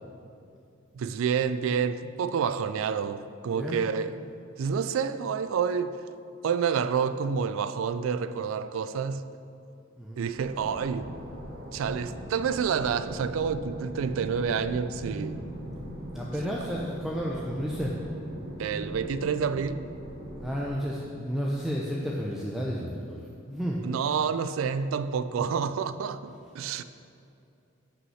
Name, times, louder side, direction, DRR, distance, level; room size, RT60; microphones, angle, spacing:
voice 1, 0.9-4.2 4.6-6.0 6.4-9.2 10.2-11.1 11.7-15.4 16.5-16.6 18.6-19.8 23.8-26.8, right 6 dB, 75° right, 0.3 m, -28 dB
sound 1, 10.4-20.7, right 1 dB, 50° right, 1.3 m, -40 dB
voice 2, 16.1-18.0 20.4-23.2 23.5-23.8, equal, ahead, 0.5 m, -31 dB
6.3 x 5.5 x 5.6 m
head